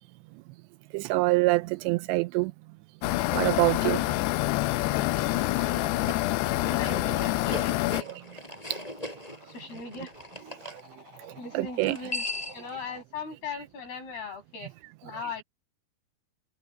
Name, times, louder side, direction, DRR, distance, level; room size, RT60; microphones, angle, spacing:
voice 1, 0.9-2.5 3.3-4.0 5.2-5.9 7.7-8.2 8.7-8.8 10.6-10.8 11.2-12.0 14.6-14.7, right 21 dB, 85° right, 2.8 m, -27 dB
sound 1, 3.0-8.0, left 18 dB, 80° left, 2.7 m, -27 dB
voice 2, 3.8-4.2 5.5-8.1 9.5-10.1 11.4-12.2 12.5-14.7 15.0-15.4, left 5 dB, 60° left, 9.5 m, -40 dB
sound 2, 6.0-10.8 11.8-12.7, left 1 dB, 10° left, 6.3 m, -38 dB
sound 3, 8.0-13.0, left 2 dB, 50° right, 6.0 m, -53 dB
omnidirectional pair, 5.0 m